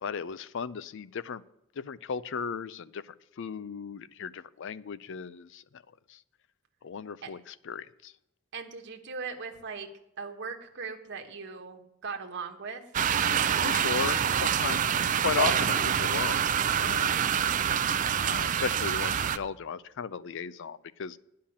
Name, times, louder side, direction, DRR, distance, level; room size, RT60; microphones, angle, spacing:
voice 1, 0.0-1.4 1.8-5.8 6.1-6.2 6.8-8.1 13.6-14.9 15.2-16.5 16.8-17.3 18.2-21.2, left 6 dB, 55° left, 17 dB, 0.4 m, -35 dB
voice 2, 8.5-9.9 10.2-12.8 17.1-17.5, right 5 dB, 55° right, 3 dB, 1.2 m, -39 dB
sound 1, 12.9-19.4, right 8 dB, 35° right, 0.4 m, -26 dB
10.5 x 5.7 x 8.5 m, 0.86 s
head